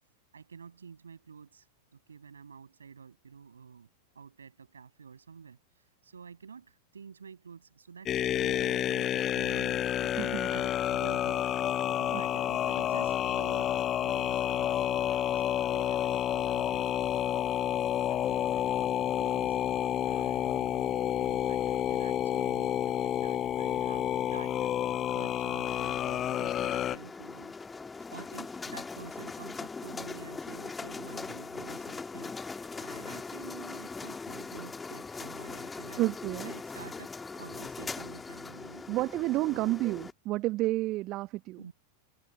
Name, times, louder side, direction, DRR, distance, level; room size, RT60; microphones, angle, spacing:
voice 1, 0.3-3.9 4.1-9.9 10.2-11.5 11.7-17.3 18.1-19.6 20.0-27.5 28.1-36.1 36.4-38.8 39.5-39.8 41.6-41.7, right 6 dB, 70° right, 7.2 m, -49 dB
sound 1, 8.1-27.0, left 11 dB, 30° left, 0.7 m, -29 dB
voice 2, 10.2-10.6 12.1-12.2 34.5-34.6 36.0-36.5 38.9-41.7, right 18 dB, 40° right, 1.2 m, -31 dB
sound 2, 25.7-40.1, left 4 dB, 15° left, 2.0 m, -41 dB
figure-of-eight pair, 90°, 0 cm